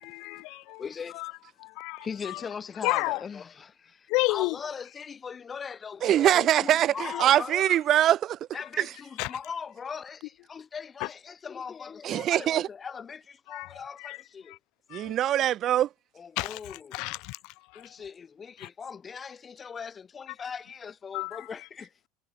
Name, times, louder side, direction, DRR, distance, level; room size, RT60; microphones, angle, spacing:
voice 1, 0.0-0.8 1.1-1.3 1.6-2.4 2.8-3.2 4.1-4.6 7.1-7.2 9.2-9.4 11.0-11.1 13.5-14.2 14.5-14.6 14.9-15.2 16.4-17.9 18.6-18.7 21.1-21.5, left 26 dB, 70° left, 0.7 m, -32 dB
voice 2, 0.8-1.3 2.0-7.7 8.5-14.6 16.2-17.0 17.7-21.9, left 6 dB, 25° left, 1.9 m, -40 dB
voice 3, 6.0-8.4 8.8-8.9 12.0-12.7 14.9-15.9, right 12 dB, 45° right, 0.4 m, -23 dB
supercardioid pair, 130°, 0 cm